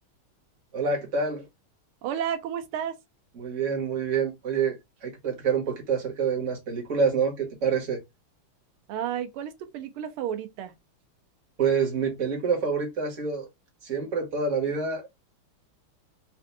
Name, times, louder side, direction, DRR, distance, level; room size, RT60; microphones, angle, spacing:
voice 1, 0.7-1.5 3.4-4.7 5.0-8.0 11.6-13.5 13.8-15.1, right 5 dB, 40° right, 1.7 m, -27 dB
voice 2, 2.0-3.0 8.9-10.7, right 9 dB, 90° right, 1.6 m, -32 dB
4.4 x 2.6 x 2.5 m
omnidirectional pair, 2.3 m